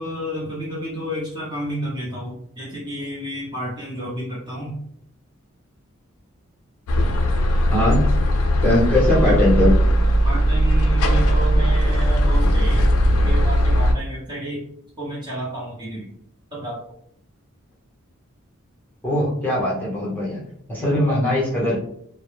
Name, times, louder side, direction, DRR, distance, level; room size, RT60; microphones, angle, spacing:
voice 1, 0.0-4.8 8.9-9.4 10.2-12.9 13.2-14.6 15.0-16.1 16.5-16.8, right 1 dB, 20° right, -7 dB, 0.7 m, -30 dB
sound 1, 6.9-13.9, equal, 80° left, 0.4 m, -18 dB
voice 2, 7.7-8.1 8.6-9.8 19.0-20.4 20.7-21.8, left 1 dB, 10° left, -8 dB, 0.8 m, -20 dB
2.2 x 2.0 x 3.1 m, 0.68 s
head